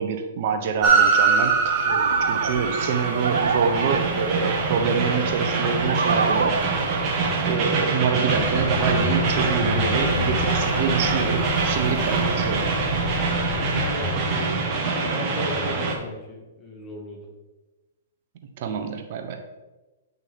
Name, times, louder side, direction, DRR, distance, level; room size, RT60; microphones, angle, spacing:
voice 1, 0.0-1.9 2.3-6.9 7.4-12.7 18.6-19.4, right 6 dB, 55° right, 7 dB, 1.1 m, -26 dB
Train, 0.8-16.0, right 4 dB, 30° right, 1.9 m, -24 dB
sound 1, 1.7-7.6, right 5 dB, 85° right, 0.6 m, -28 dB
Vehicle, 8.3-14.7, left 7 dB, 60° left, 0.8 m, -32 dB
voice 2, 13.4-17.3, left 1 dB, 15° left, -1 dB, 2.0 m, -37 dB
10.0 x 6.1 x 3.7 m, 1.1 s
hypercardioid pair, 130°, 0 cm